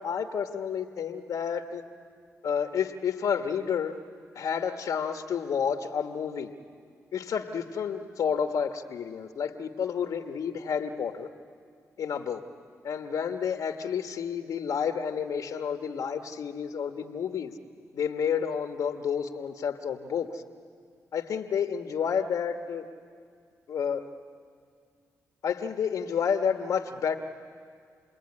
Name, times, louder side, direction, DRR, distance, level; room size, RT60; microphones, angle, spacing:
voice 1, 0.0-1.8 2.4-4.0 4.3-6.5 7.1-11.3 12.0-12.4 12.8-17.6 17.9-20.4 21.1-22.9 23.7-24.1 25.4-27.2, left 7 dB, 70° left, 6 dB, 1.3 m, -30 dB
29.0 x 20.5 x 9.7 m, 2.1 s
supercardioid pair, 55°, 6 cm